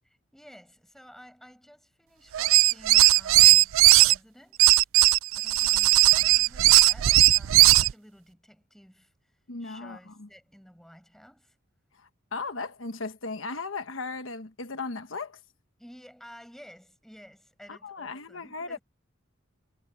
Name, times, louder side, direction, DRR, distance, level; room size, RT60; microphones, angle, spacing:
voice 1, 0.0-11.6 15.8-18.8, equal, ahead, 7.4 m, -53 dB
sound 1, 2.3-4.1 4.6-7.9, right 17 dB, 80° right, 0.4 m, -18 dB
voice 2, 9.5-10.3 12.0-15.4 17.7-18.8, left 3 dB, 75° left, 1.2 m, -36 dB
head